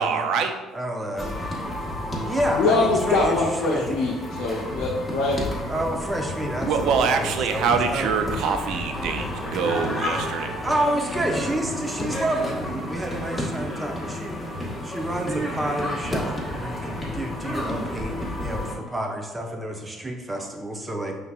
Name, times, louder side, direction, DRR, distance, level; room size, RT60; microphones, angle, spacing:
voice 1, 0.0-0.5 6.7-10.5, right 6 dB, 65° right, 6 dB, 0.4 m, -24 dB
voice 2, 0.7-1.4 2.3-4.0 5.7-8.1 10.6-14.4 14.8-21.2, right 1 dB, 20° right, 2 dB, 0.7 m, -29 dB
sound 1, 1.2-18.7, left 1 dB, 15° left, 1.3 m, -31 dB
voice 3, 2.6-5.4, left 3 dB, 65° left, -3 dB, 0.6 m, -23 dB
5.5 x 3.3 x 2.4 m, 1.2 s
hypercardioid pair, 55°, 0 cm